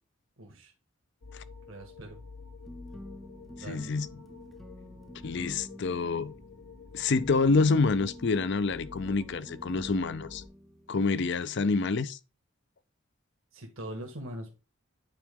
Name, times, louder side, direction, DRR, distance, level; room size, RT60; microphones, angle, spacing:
voice 1, 0.4-0.7 1.7-2.2 3.5-3.9 13.5-14.5, right 1 dB, 65° right, 1.5 m, -42 dB
sound 1, 1.2-10.5, left 4 dB, 85° left, 1.0 m, -49 dB
sound 2, 2.6-11.9, equal, ahead, 0.5 m, -48 dB
voice 2, 3.7-4.1 5.2-6.3 6.9-10.4 10.9-12.2, left 4 dB, 50° left, 0.5 m, -27 dB
8.9 x 4.6 x 3.6 m
head